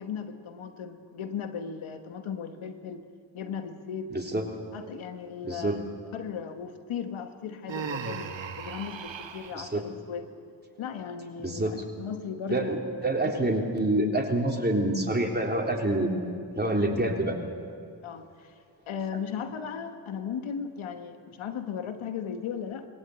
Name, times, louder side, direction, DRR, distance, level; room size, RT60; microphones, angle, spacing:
voice 1, 0.0-3.0 3.3-4.1 4.7-5.9 6.1-8.3 8.6-10.3 10.8-12.8 13.2-13.3 18.0-18.5 18.9-22.9, left 7 dB, 90° left, 8 dB, 1.3 m, -36 dB
voice 2, 4.1-4.4 5.4-5.8 9.5-9.8 11.4-11.8 12.5-12.8 13.0-16.1 16.6-17.4, right 1 dB, 20° right, 0 dB, 3.6 m, -26 dB
Human voice, 7.7-9.6, right 6 dB, 70° right, 1.4 m, -36 dB
21.0 x 17.0 x 8.1 m, 2.2 s
supercardioid pair, 40°, 46 cm